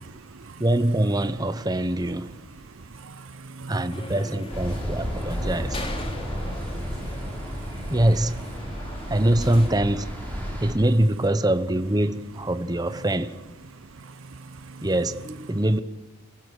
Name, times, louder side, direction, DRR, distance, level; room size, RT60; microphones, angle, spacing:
voice 1, 0.0-0.6 2.8-4.1 5.1-5.4 6.0-7.9 13.9-14.9, right 3 dB, 85° right, 0.8 m, -43 dB
voice 2, 0.6-2.3 3.7-5.8 7.9-8.4 9.1-10.2 10.6-13.3 14.8-15.8, right 1 dB, 20° right, 0.9 m, -23 dB
sound 1, 3.9-9.7, left 2 dB, 30° left, 3.0 m, -40 dB
sound 2, 4.5-10.7, equal, 10° left, 6.9 m, -32 dB
29.5 x 16.5 x 8.1 m
head